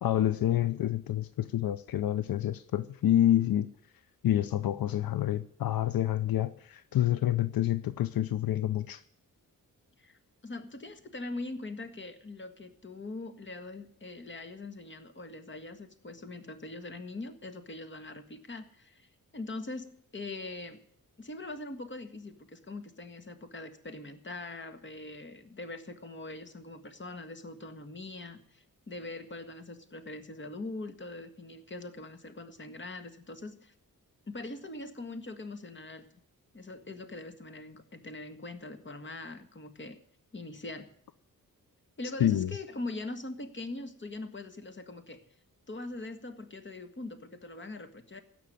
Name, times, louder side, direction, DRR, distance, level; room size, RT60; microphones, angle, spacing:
voice 1, 0.0-3.7 4.2-9.0 42.2-42.5, left 12 dB, 80° left, 14 dB, 0.7 m, -28 dB
voice 2, 10.0-20.8 21.2-33.7 34.3-36.1 36.5-40.0 40.3-40.9 42.0-45.2 45.7-48.2, left 2 dB, 35° left, 9 dB, 1.7 m, -42 dB
16.5 x 6.2 x 9.3 m, 0.65 s
cardioid pair, 95°, 35 cm